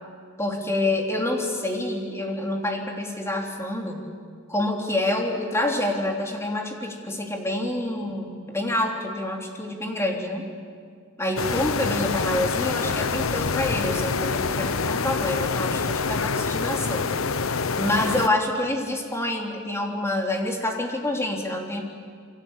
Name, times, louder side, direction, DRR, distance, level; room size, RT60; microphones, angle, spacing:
voice 1, 0.4-4.1 4.5-10.5 11.2-17.1 17.8-21.8, left 1 dB, 15° left, 1 dB, 3.3 m, -27 dB
sound 1, 11.4-18.3, left 4 dB, 80° left, 0.9 m, -26 dB
28.5 x 24.0 x 8.3 m, 2.1 s
head